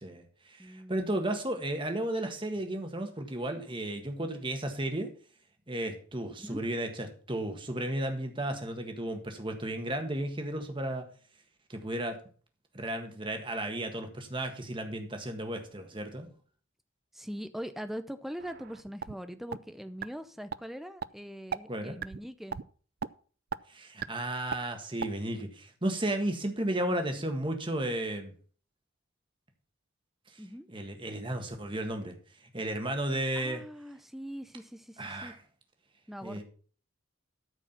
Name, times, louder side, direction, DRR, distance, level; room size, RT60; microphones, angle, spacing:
voice 1, 0.0-5.1 5.7-11.1 11.7-12.2 12.7-16.3 21.7-22.0 23.7-28.3 30.7-32.1 32.4-33.6 35.0-35.4 36.2-36.4, right 1 dB, 25° right, 5 dB, 1.6 m, -34 dB
voice 2, 0.6-1.2 6.3-6.6 17.1-22.6 30.4-30.7 33.4-35.3 36.1-36.4, equal, ahead, 10 dB, 0.6 m, -42 dB
sound 1, 18.4-19.1 19.5-19.6 20.0-20.1 20.5-20.6 21.0-21.1 21.5-21.6 22.0-22.2 22.5-22.6 23.0-23.1 23.5-23.6 24.0-24.1 24.5-24.6 25.0-25.1, right 7 dB, 45° right, 0.4 m, -35 dB
13.0 x 4.9 x 5.8 m, 0.43 s
head